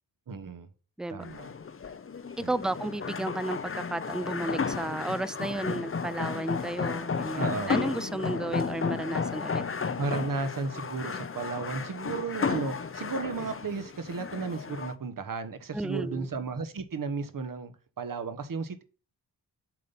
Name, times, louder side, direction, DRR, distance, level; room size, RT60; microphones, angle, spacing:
voice 1, 0.3-0.7 1.1-1.5 2.4-2.5 7.4-7.8 10.0-18.8, right 4 dB, 50° right, 1.3 m, -34 dB
sound 1, 1.2-14.9, left 5 dB, 30° left, 0.8 m, -33 dB
voice 2, 2.4-9.6 15.7-16.3, right 2 dB, ahead, 0.3 m, -33 dB
7.6 x 3.9 x 5.6 m
supercardioid pair, 45°, 43 cm